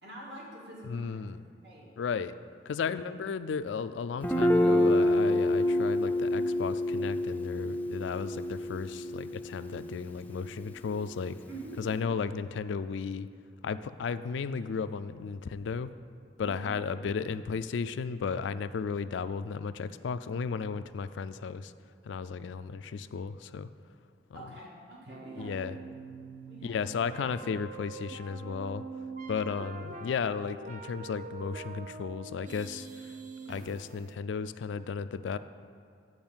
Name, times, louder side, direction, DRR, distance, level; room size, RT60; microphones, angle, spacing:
voice 1, 0.0-1.2 1.6-1.9 2.7-3.0 11.5-11.9 16.4-16.8 24.3-25.7 26.5-26.9, right 1 dB, 70° right, -4 dB, 2.2 m, -46 dB
voice 2, 0.8-1.4 2.0-2.3 2.7-11.4 11.8-13.3 13.6-15.9 16.4-21.7 22.0-23.7 24.3-24.4 25.4-25.8 26.6-28.8 29.3-33.1 33.5-35.4, left 5 dB, 80° left, 12 dB, 0.3 m, -34 dB
Guitar, 4.2-11.9, left 1 dB, 10° left, 0.4 m, -28 dB
sound 1, 25.1-34.2, right 4 dB, 40° right, 0.5 m, -44 dB
9.5 x 4.7 x 7.2 m, 2.3 s
head